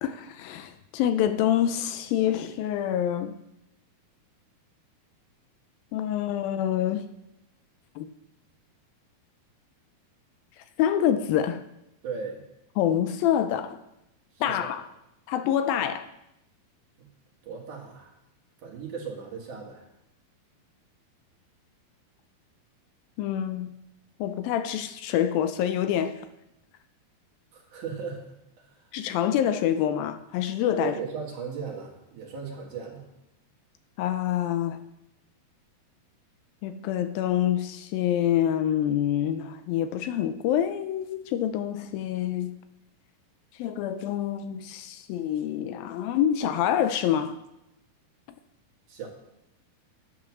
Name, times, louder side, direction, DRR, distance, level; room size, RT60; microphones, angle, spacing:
voice 1, 0.0-3.4 5.9-7.1 8.0-8.1 10.6-11.6 12.8-13.8 14.4-14.9 15.3-16.1 23.2-23.7 24.2-26.2 28.9-31.0 34.0-34.8 36.6-42.5 43.6-47.4, left 10 dB, 80° left, 10 dB, 2.3 m, -26 dB
voice 2, 12.0-12.5 14.3-14.7 17.0-17.1 17.4-18.1 18.6-19.9 27.5-28.2 28.7-28.9 30.8-33.1 48.9-49.1, right 6 dB, 60° right, -1 dB, 3.1 m, -37 dB
10.5 x 8.2 x 6.1 m, 0.87 s
omnidirectional pair, 4.3 m